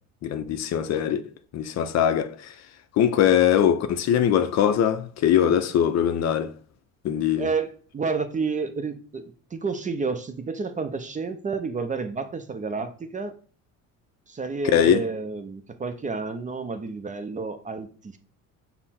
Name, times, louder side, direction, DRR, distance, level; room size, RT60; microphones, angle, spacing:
voice 1, 0.2-1.2 1.5-2.5 2.9-6.5 7.0-7.5 14.7-15.0, left 9 dB, 50° left, 0.5 m, -21 dB
voice 2, 7.4-13.4 14.3-18.2, right 4 dB, 20° right, 0.5 m, -30 dB
5.5 x 2.1 x 4.2 m
cardioid pair, 100°, 35 cm